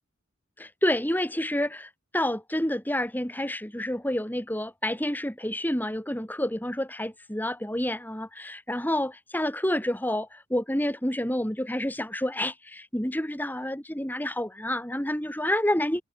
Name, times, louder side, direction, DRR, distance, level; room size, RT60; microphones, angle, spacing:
voice 1, 0.6-16.0, left 1 dB, 10° left, 3.9 m, -29 dB
head